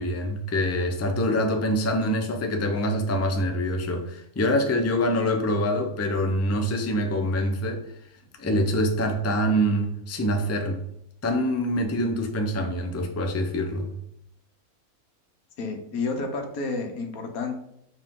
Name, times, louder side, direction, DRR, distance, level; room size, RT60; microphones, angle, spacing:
voice 1, 0.0-7.8 8.4-10.8 11.2-13.9, equal, 15° left, 4 dB, 0.5 m, -25 dB
voice 2, 15.6-17.6, left 3 dB, 80° left, 4 dB, 1.5 m, -30 dB
7.4 x 4.6 x 3.8 m, 0.76 s
omnidirectional pair, 1.5 m